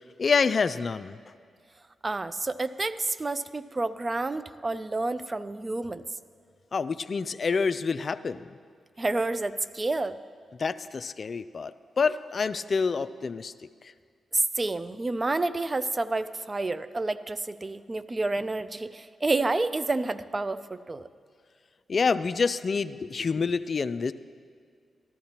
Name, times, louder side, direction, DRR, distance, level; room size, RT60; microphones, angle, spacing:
voice 1, 0.2-1.2 6.7-8.6 10.6-11.7 12.0-13.5 21.9-24.1, left 5 dB, 55° left, 14 dB, 0.3 m, -27 dB
voice 2, 2.0-6.1 9.0-10.2 14.3-21.1, right 2 dB, 35° right, 13 dB, 0.4 m, -29 dB
14.0 x 12.0 x 2.9 m, 2.1 s
supercardioid pair, 50°, 0 cm